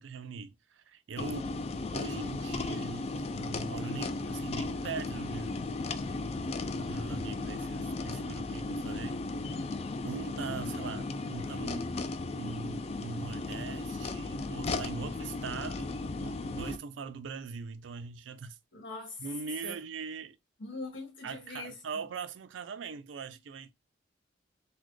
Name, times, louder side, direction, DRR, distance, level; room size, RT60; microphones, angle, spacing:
voice 1, 0.0-1.6 1.9-5.6 6.7-9.2 9.7-9.8 10.0-12.0 12.4-18.6 19.2-20.4 21.2-23.7, right 5 dB, 85° right, 0.4 m, -41 dB
sound 1, 1.2-16.8, left 3 dB, 35° left, 0.3 m, -35 dB
voice 2, 18.7-19.2 19.6-19.7 20.6-21.7, left 3 dB, 85° left, 1.4 m, -42 dB
4.0 x 2.1 x 3.0 m
head